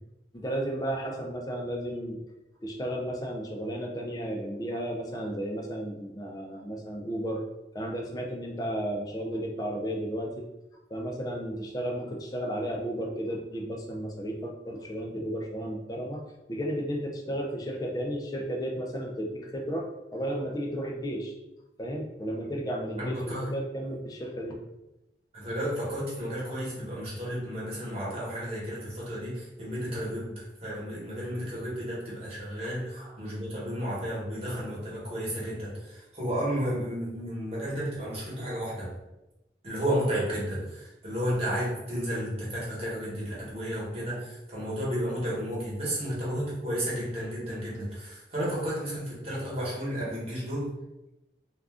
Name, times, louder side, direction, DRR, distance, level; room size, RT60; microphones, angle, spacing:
voice 1, 0.3-2.2 2.6-7.4 7.7-10.5 10.9-16.2 16.5-21.3 21.8-24.6, equal, 20° left, 0 dB, 0.4 m, -33 dB
voice 2, 23.0-23.5 25.3-38.9 39.6-50.7, equal, 35° right, -6 dB, 1.0 m, -32 dB
2.4 x 2.2 x 3.5 m, 0.95 s
head